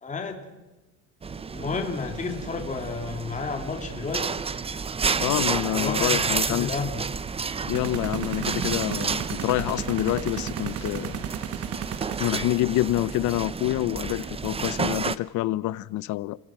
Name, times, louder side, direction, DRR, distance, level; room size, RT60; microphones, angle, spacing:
voice 1, 0.0-0.4 1.5-4.4 5.7-7.0, left 4 dB, 20° left, 2.5 m, -31 dB
sound 1, 1.2-15.2, right 5 dB, 15° right, 0.7 m, -31 dB
voice 2, 5.2-6.7 7.6-11.3 12.2-16.4, left 16 dB, 55° left, 0.7 m, -27 dB
sound 2, 7.7-12.6, right 9 dB, 40° right, 1.1 m, -35 dB
29.5 x 16.5 x 6.1 m
cardioid pair, 115°, 36 cm